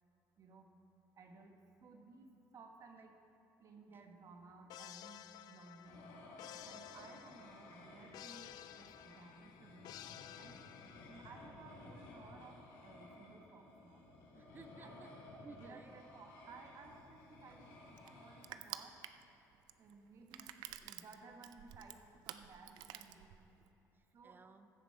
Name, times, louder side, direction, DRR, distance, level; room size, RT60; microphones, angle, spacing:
voice 1, 1.1-1.5 1.8-3.1 3.6-5.2 5.5-6.2 6.6-9.9 10.4-10.6 10.8-14.0 14.8-19.0 19.8-20.4 20.8-23.3 24.1-24.4, right 4 dB, 50° right, 4 dB, 1.2 m, -58 dB
sound 1, 4.7-11.6, left 12 dB, 70° left, 0.3 m, -54 dB
sound 2, 5.8-18.5, left 2 dB, 90° left, 2.4 m, -56 dB
voice 2, 14.3-15.1 15.4-15.9 18.6-18.7 20.3-20.9 23.9-24.7, right 4 dB, 30° right, 9 dB, 0.5 m, -58 dB
Crushing, 16.9-23.7, right 13 dB, 85° right, 0.4 m, -51 dB
15.5 x 7.1 x 4.4 m, 2.8 s
supercardioid pair, 85°, 7 cm